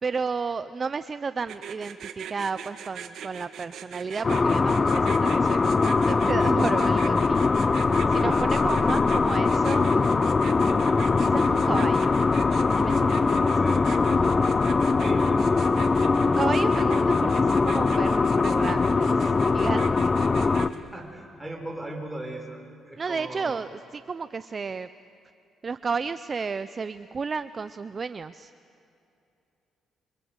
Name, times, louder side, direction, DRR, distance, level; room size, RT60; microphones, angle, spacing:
voice 1, 0.0-7.4 8.1-9.9 10.5-12.1 12.8-13.5 14.6-14.8 16.4-20.1 23.0-24.9 25.6-28.5, right 5 dB, 40° right, 13 dB, 0.6 m, -32 dB
sound 1, 1.5-20.8, right 8 dB, 70° right, 2.0 m, -41 dB
sound 2, 4.2-20.7, left 4 dB, 30° left, 0.8 m, -22 dB
voice 2, 8.2-8.6 13.5-13.9 15.0-15.9 20.3-23.6, right 1 dB, 10° right, 2 dB, 5.4 m, -39 dB
27.5 x 26.0 x 8.2 m, 2.6 s
cardioid pair, 90°, 0 cm